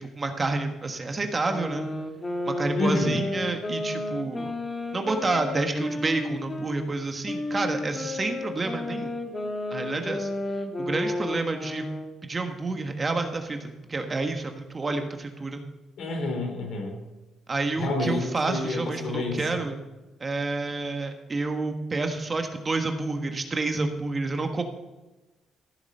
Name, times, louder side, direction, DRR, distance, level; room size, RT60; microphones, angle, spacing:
voice 1, 0.0-1.9 2.5-4.5 4.9-9.1 9.7-10.3 10.8-11.9 12.2-15.6 17.5-19.8 20.2-24.6, right 3 dB, 30° right, 5 dB, 1.5 m, -29 dB
sound 1, 1.4-6.8 7.3-12.1, left 2 dB, 25° left, 1.5 m, -32 dB
voice 2, 2.8-3.2 16.0-17.0 17.8-19.4, left 2 dB, 70° left, 3 dB, 3.7 m, -28 dB
14.5 x 7.2 x 5.5 m, 1.1 s
cardioid pair, 90°, 0 cm